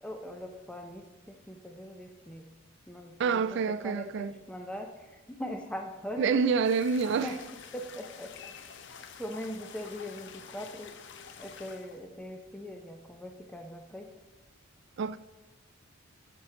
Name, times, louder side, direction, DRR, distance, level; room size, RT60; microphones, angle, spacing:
voice 1, 0.0-2.4 2.9-6.3 7.2-7.3 7.7-8.3 9.2-10.9 11.4-14.1, left 1 dB, 5° left, 0.5 m, -41 dB
voice 2, 3.2-4.4 6.2-7.3 15.0-15.2, right 5 dB, 55° right, 0.3 m, -27 dB
sound 1, 6.6-12.0, left 6 dB, 55° left, 0.5 m, -48 dB
9.2 x 5.8 x 3.7 m
head